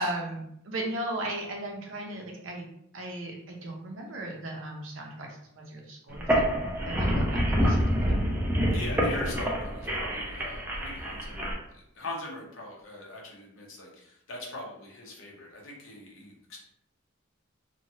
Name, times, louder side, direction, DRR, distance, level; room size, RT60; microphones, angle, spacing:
voice 1, 0.0-2.6 2.9-6.5 6.8-8.3, right 1 dB, 70° right, 1 dB, 0.6 m, -36 dB
sound 1, 6.1-11.5, equal, 10° right, 0.4 m, -27 dB
voice 2, 8.7-16.6, left 2 dB, 70° left, -2 dB, 0.8 m, -41 dB
2.9 x 2.2 x 2.7 m, 0.74 s
head